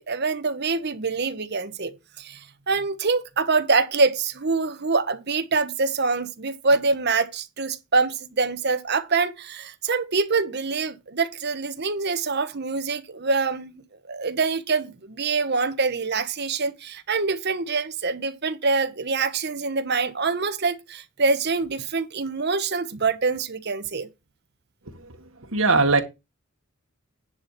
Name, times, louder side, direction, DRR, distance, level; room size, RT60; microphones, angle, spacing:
voice 1, 0.0-1.9 2.2-13.8 14.1-24.1, right 4 dB, 55° right, 1.1 m, -25 dB
voice 2, 25.5-26.0, right 3 dB, 75° right, 1.7 m, -19 dB
10.5 x 4.3 x 6.7 m
head